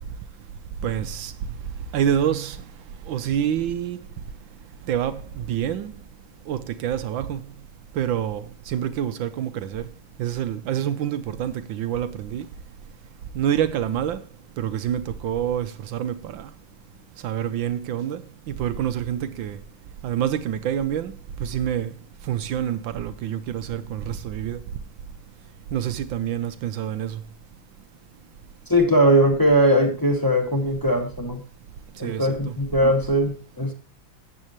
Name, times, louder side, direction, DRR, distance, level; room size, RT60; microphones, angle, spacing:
voice 1, 0.8-1.3 1.9-2.6 3.1-4.0 4.9-5.9 6.5-7.4 7.9-9.9 10.2-12.5 13.3-14.2 14.6-16.5 17.2-19.6 20.0-21.9 22.2-24.6 25.7-27.2 32.0-32.5, right 10 dB, 75° right, 1.4 m, -27 dB
voice 2, 28.7-31.4 32.0-33.7, equal, 10° left, 1.9 m, -20 dB
14.0 x 8.6 x 3.0 m
omnidirectional pair, 2.2 m